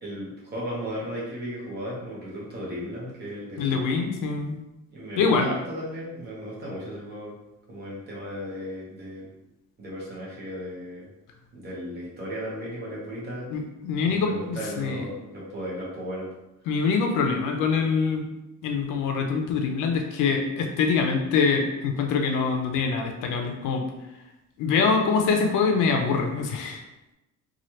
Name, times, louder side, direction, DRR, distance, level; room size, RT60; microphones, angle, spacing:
voice 1, 0.0-3.8 4.9-7.4 7.7-9.3 9.8-11.1 11.5-13.5 14.0-16.3, equal, 30° right, -5 dB, 0.9 m, -35 dB
voice 2, 3.6-4.6 5.2-5.5 13.5-15.0 16.7-18.2 18.6-23.8 24.6-26.8, left 5 dB, 75° left, 3 dB, 0.5 m, -24 dB
3.1 x 2.4 x 2.8 m, 0.94 s
cardioid pair, 175°, 32 cm